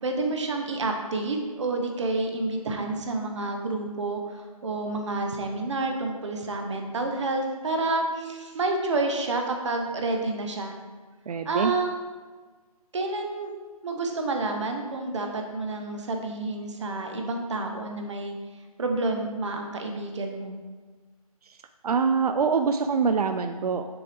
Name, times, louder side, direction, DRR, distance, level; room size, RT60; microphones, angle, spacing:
voice 1, 0.0-10.7 11.4-11.9 12.9-13.6 13.8-18.4 18.8-20.6, right 2 dB, 50° right, 3 dB, 0.9 m, -29 dB
voice 2, 11.3-11.7 21.8-23.9, right 5 dB, 90° right, 8 dB, 0.4 m, -24 dB
7.0 x 4.5 x 3.4 m, 1.4 s
hypercardioid pair, 170°, 19 cm